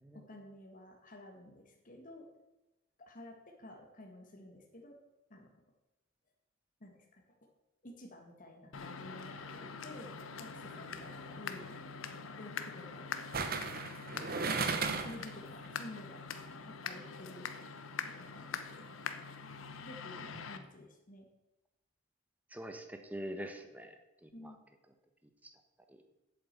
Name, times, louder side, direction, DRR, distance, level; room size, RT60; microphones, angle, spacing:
voice 1, 0.1-2.3 3.0-5.0 5.3-5.5 6.8-7.2 7.8-10.1 10.4-11.7 12.4-13.1 15.0-16.2 16.7-17.5 18.1-18.9 19.8-21.3 24.3-24.6, left 1 dB, 40° left, 1 dB, 1.8 m, -52 dB
sound 1, 8.7-20.6, left 5 dB, 90° left, 1.0 m, -44 dB
sound 2, 10.7-11.0 13.3-15.3 15.6-15.7, right 4 dB, 50° right, 1.1 m, -35 dB
voice 2, 22.5-23.9 24.2-24.5 25.9-26.0, equal, 10° right, 6 dB, 1.2 m, -44 dB
8.5 x 7.8 x 8.2 m, 1.0 s
head